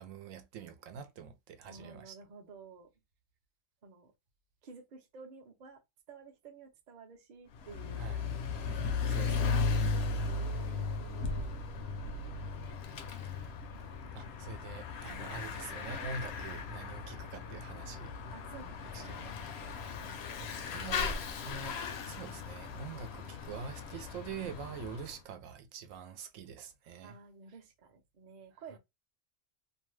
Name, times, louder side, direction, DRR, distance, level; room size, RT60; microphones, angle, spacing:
voice 1, 0.0-2.2 8.0-8.2 8.6-9.9 14.1-18.1 18.9-19.3 20.4-27.2, right 5 dB, 80° right, 1.0 m, -45 dB
voice 2, 1.6-2.9 3.8-4.1 4.6-5.8 6.1-8.1 8.6-9.8 10.2-11.5 18.3-20.2 27.0-28.8, right 4 dB, 45° right, 0.6 m, -53 dB
Bicycle / Mechanisms, 7.5-25.1, left 4 dB, 65° left, 0.7 m, -37 dB
2.6 x 2.2 x 3.1 m
omnidirectional pair, 1.3 m